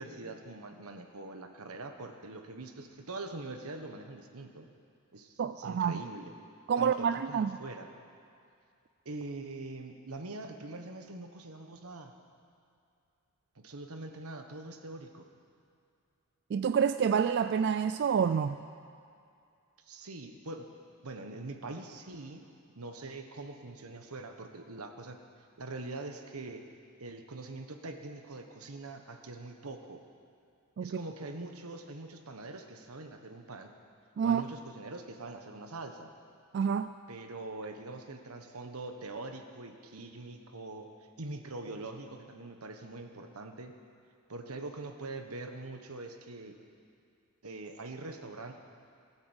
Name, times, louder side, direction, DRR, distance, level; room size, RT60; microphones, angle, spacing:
voice 1, 0.0-4.7 5.1-6.3 6.8-7.9 9.0-12.1 13.5-15.3 19.8-20.7 21.0-22.4 22.7-25.2 25.6-26.6 27.0-30.0 30.8-33.7 34.2-36.1 37.1-40.9 41.2-43.7 44.3-46.6 47.4-48.5, right 2 dB, 85° right, 5 dB, 1.3 m, -43 dB
voice 2, 5.4-6.0 6.7-7.5 16.5-18.6 30.8-31.0 34.2-34.4 36.5-36.9, right 7 dB, 50° right, 11 dB, 0.3 m, -28 dB
17.5 x 8.9 x 8.0 m, 2.4 s
head